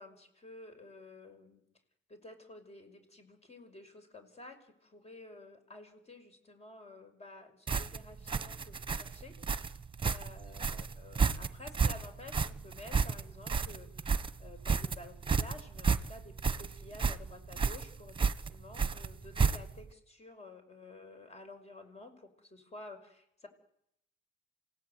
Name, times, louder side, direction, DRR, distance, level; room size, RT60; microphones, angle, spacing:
voice 1, 0.0-1.6 2.1-23.5, left 2 dB, 30° left, 7 dB, 5.8 m, -52 dB
sound 1, 7.7-19.9, right 5 dB, 25° right, 1.3 m, -32 dB
27.5 x 17.5 x 9.5 m, 0.77 s
cardioid pair, 90°, 20 cm